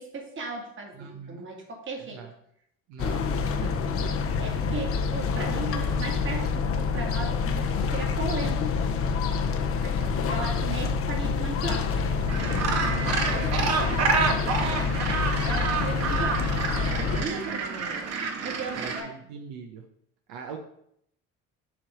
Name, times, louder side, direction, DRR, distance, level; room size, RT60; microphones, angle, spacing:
voice 1, 0.0-2.2 3.9-8.6 9.5-14.4 15.4-18.0 18.4-19.1, right 3 dB, 40° right, 2 dB, 1.7 m, -37 dB
voice 2, 0.9-1.4 2.0-2.3 2.9-3.7 10.3-10.4 18.7-19.8 20.3-20.6, right 6 dB, 80° right, 3 dB, 0.8 m, -42 dB
sound 1, 3.0-17.3, left 5 dB, 50° left, 0.8 m, -27 dB
Gull seagull, 12.3-19.0, right 4 dB, 55° right, 1.1 m, -28 dB
7.3 x 3.2 x 4.9 m, 0.72 s
supercardioid pair, 75°, 30 cm